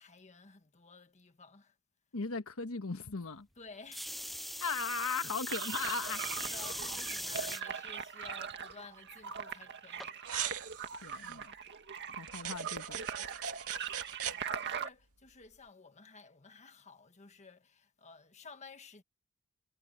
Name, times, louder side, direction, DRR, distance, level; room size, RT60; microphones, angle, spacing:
voice 1, 0.0-1.7 3.5-4.1 6.4-10.2 13.5-13.6 14.3-19.0, left 4 dB, 30° left, 1.5 m, -54 dB
voice 2, 2.1-3.5 4.6-6.2 11.0-11.5 12.1-13.0, left 4 dB, 70° left, 1.3 m, -37 dB
sound 1, 3.9-7.6 8.3-8.7 10.0-10.1, equal, ahead, 0.3 m, -40 dB
sound 2, 5.5-14.9, right 6 dB, 50° right, 2.0 m, -41 dB
sound 3, 10.3-11.4 12.3-14.4, right 10 dB, 85° right, 2.1 m, -40 dB
head